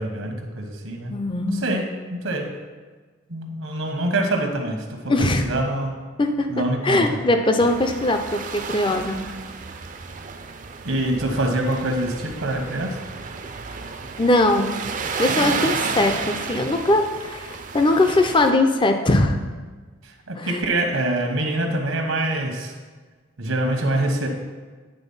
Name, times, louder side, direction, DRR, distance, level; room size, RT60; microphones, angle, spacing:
voice 1, 0.0-1.1 1.4-2.5 3.3-5.9 6.5-7.2 10.8-13.0 20.0-22.7 23.4-24.3, right 1 dB, 80° right, 3 dB, 1.1 m, -25 dB
voice 2, 1.1-1.7 5.1-5.5 6.2-9.2 14.2-14.7 15.2-19.4 20.4-20.6, left 2 dB, 25° left, 6 dB, 0.5 m, -21 dB
sound 1, 7.6-18.5, right 5 dB, 40° right, 0.5 m, -32 dB
9.1 x 3.9 x 5.5 m, 1.4 s
head